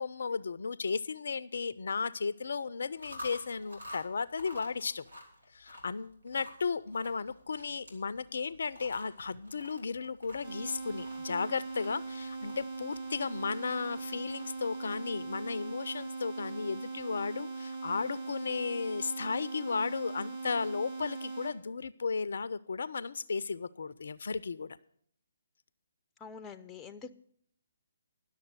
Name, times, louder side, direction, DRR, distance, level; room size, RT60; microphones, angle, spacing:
voice 1, 0.0-5.0 5.5-24.8, left 5 dB, 60° left, 16 dB, 0.4 m, -35 dB
Chewing mastication, 2.8-16.0, left 1 dB, 80° right, 2.8 m, -51 dB
sound 1, 10.4-21.5, right 3 dB, 50° right, 3.2 m, -40 dB
voice 2, 26.2-27.1, left 6 dB, 10° left, 10 dB, 0.5 m, -45 dB
11.0 x 6.6 x 7.9 m, 0.64 s
figure-of-eight pair, 140°, 0 cm